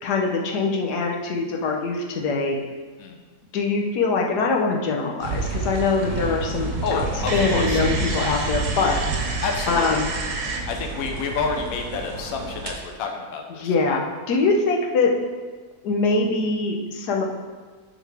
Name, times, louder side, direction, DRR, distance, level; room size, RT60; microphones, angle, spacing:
voice 1, 0.0-2.6 3.5-7.0 7.3-9.0 9.7-10.1 13.6-15.1 15.8-17.2, left 4 dB, 85° left, 1 dB, 1.4 m, -23 dB
sound 1, 5.2-10.6, right 3 dB, 60° right, 1.2 m, -32 dB
sound 2, 5.2-12.7, right 3 dB, 85° right, 1.5 m, -29 dB
voice 2, 6.8-7.8 9.4-10.0 10.7-14.0, left 4 dB, 65° left, 3 dB, 1.2 m, -29 dB
11.5 x 4.0 x 3.5 m, 1.4 s
omnidirectional pair, 1.7 m